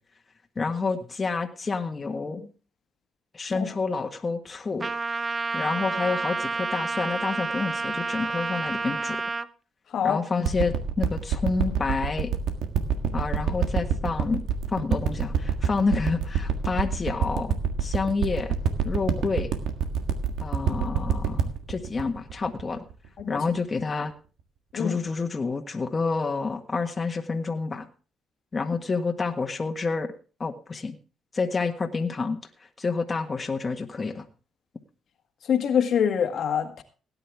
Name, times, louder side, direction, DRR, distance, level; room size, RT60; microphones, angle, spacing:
voice 1, 0.5-2.5 3.3-4.9 5.5-9.2 10.0-12.3 13.1-14.4 14.7-17.5 17.8-18.5 18.8-19.5 20.4-22.8 23.3-24.1 24.7-27.9 28.5-30.1 30.4-31.0 31.3-32.4 32.8-34.3, left 4 dB, 30° left, 1.6 m, -28 dB
Trumpet, 4.8-9.5, right 3 dB, 30° right, 0.7 m, -29 dB
voice 2, 9.9-10.2 23.2-23.4 24.7-25.0 35.4-36.8, left 8 dB, 65° left, 1.7 m, -25 dB
sound 1, 10.4-23.2 23.8-23.9, right 7 dB, 85° right, 1.6 m, -26 dB
17.5 x 9.9 x 3.6 m
cardioid pair, 90°, 0 cm